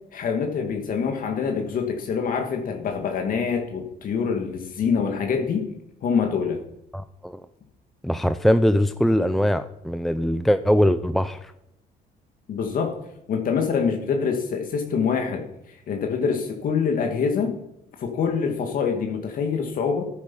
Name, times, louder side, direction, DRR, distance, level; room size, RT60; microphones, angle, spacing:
voice 1, 0.1-5.7 6.0-6.6 12.5-12.9 13.3-15.4 15.9-17.6 18.0-20.0, left 6 dB, 55° left, 3 dB, 2.1 m, -25 dB
voice 2, 6.9-7.4 8.0-11.5, equal, ahead, 11 dB, 0.5 m, -21 dB
14.0 x 9.5 x 5.6 m, 0.83 s
cardioid pair, 110°, 17 cm